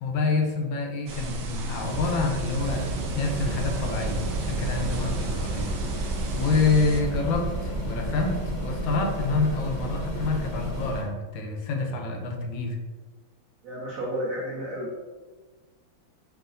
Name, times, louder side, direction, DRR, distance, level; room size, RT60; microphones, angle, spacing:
voice 1, 0.0-5.7 6.3-12.8, left 3 dB, 80° left, 2 dB, 1.4 m, -27 dB
sound 1, 1.1-7.0, right 2 dB, 85° right, 0.7 m, -35 dB
sound 2, 1.7-11.1, right 1 dB, 25° right, 1.4 m, -31 dB
voice 2, 13.6-15.0, equal, 60° right, -5 dB, 1.0 m, -32 dB
4.8 x 2.8 x 2.5 m, 1.3 s
omnidirectional pair, 2.2 m